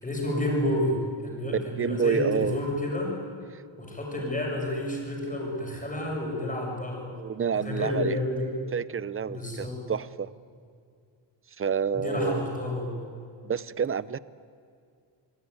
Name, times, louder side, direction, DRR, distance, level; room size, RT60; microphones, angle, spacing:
voice 1, 0.0-3.2 3.8-7.1 7.5-8.5 9.3-9.8 11.9-13.0, left 1 dB, 15° left, -1 dB, 7.0 m, -30 dB
voice 2, 1.5-2.6 3.5-3.6 7.2-8.2 8.7-10.3 11.6-12.5 13.4-14.2, right 7 dB, 30° right, 18 dB, 0.7 m, -28 dB
27.5 x 21.5 x 9.7 m, 2.3 s
wide cardioid pair, 125°, 46 cm